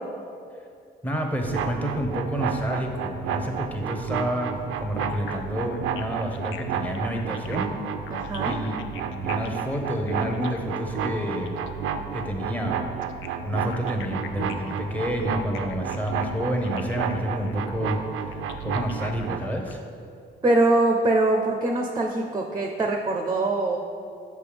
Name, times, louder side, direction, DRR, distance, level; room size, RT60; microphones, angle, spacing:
voice 1, 1.0-7.8 8.5-11.6 12.1-12.8 13.4-19.8, equal, 10° left, 1 dB, 0.9 m, -29 dB
sound 1, 1.4-19.5, right 7 dB, 90° right, 0.4 m, -31 dB
sound 2, 5.0-11.8 13.0-19.7, left 9 dB, 80° left, 0.5 m, -44 dB
voice 2, 8.1-8.6 20.4-23.8, right 2 dB, 20° right, 2 dB, 0.5 m, -23 dB
6.8 x 5.3 x 3.4 m, 2.4 s
cardioid pair, 90°, 20 cm